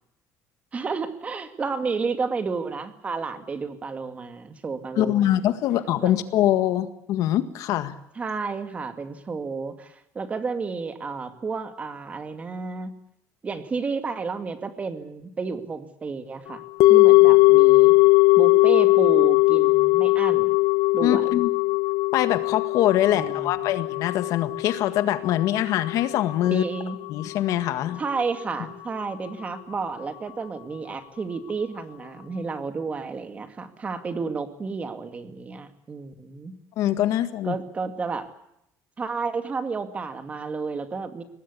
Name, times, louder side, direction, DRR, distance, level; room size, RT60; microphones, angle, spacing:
voice 1, 0.7-5.3 6.0-6.1 8.2-12.9 13.4-16.6 16.9-18.0 18.4-20.5 20.9-21.4 23.1-23.7 26.4-27.0 28.0-36.5 37.4-38.3 39.0-41.2, right 4 dB, 20° right, 9 dB, 2.2 m, -31 dB
voice 2, 5.0-8.0 21.0-21.5 22.1-26.6 27.1-28.0 36.8-37.6, left 12 dB, 65° left, 11 dB, 1.8 m, -23 dB
sound 1, 16.8-27.1 27.3-27.4, left 22 dB, 85° left, 1.2 m, -19 dB
23.5 x 19.5 x 8.5 m, 0.77 s
cardioid pair, 160°, 6 cm